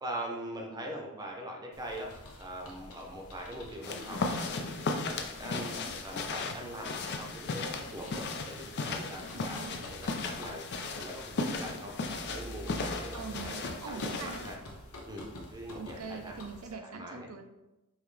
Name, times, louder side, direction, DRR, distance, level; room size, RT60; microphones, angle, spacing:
voice 1, 0.0-2.1 2.4-5.7 6.0-10.6 11.0-14.6 15.1-16.4 16.8-17.3, right 1 dB, 20° right, 0 dB, 0.7 m, -42 dB
sound 1, 1.7-16.7, left 1 dB, 80° left, 0.9 m, -49 dB
sound 2, 3.8-14.6, left 3 dB, 50° left, 0.5 m, -36 dB
voice 2, 9.3-9.8 13.1-14.4 15.8-17.4, right 5 dB, 85° right, 5 dB, 0.6 m, -43 dB
5.5 x 2.9 x 3.2 m, 0.96 s
head